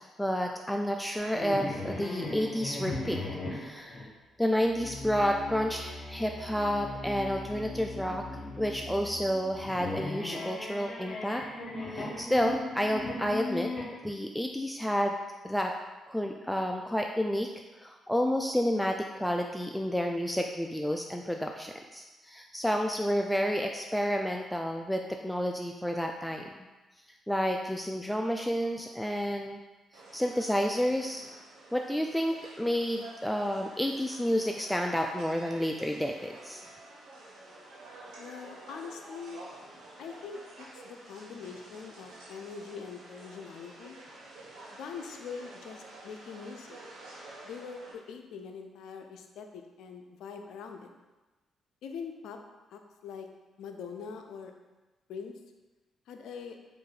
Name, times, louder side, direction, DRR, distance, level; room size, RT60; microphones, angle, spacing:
voice 1, 0.2-3.2 3.5-4.1 4.4-8.2 8.6-11.4 11.9-13.7 14.0-15.1 15.4-15.7 16.1-17.5 17.8-26.4 27.3-29.6 30.1-31.2 31.7-36.6, equal, 5° left, 3 dB, 0.4 m, -30 dB
sound 1, 1.2-4.1 4.7-13.8, left 2 dB, 45° left, 1.1 m, -38 dB
sound 2, 29.9-47.9, right 2 dB, 75° right, 1.0 m, -50 dB
voice 2, 38.2-39.4 40.0-44.0 44.7-46.8 47.4-50.9 51.8-52.4 52.7-53.3 53.6-54.5 55.1-55.3 56.1-56.6, left 6 dB, 70° left, 5 dB, 0.4 m, -43 dB
4.6 x 2.5 x 4.6 m, 1.2 s
hypercardioid pair, 45°, 0 cm